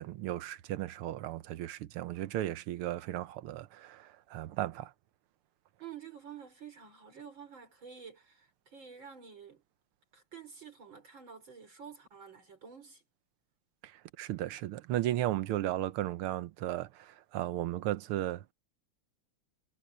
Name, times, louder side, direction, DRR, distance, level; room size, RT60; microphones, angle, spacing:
voice 1, 0.0-4.9 13.8-18.5, right 14 dB, 80° right, 1.6 m, -35 dB
voice 2, 5.8-9.6 10.1-13.0, right 7 dB, 60° right, 5.2 m, -49 dB
omnidirectional pair, 2.4 m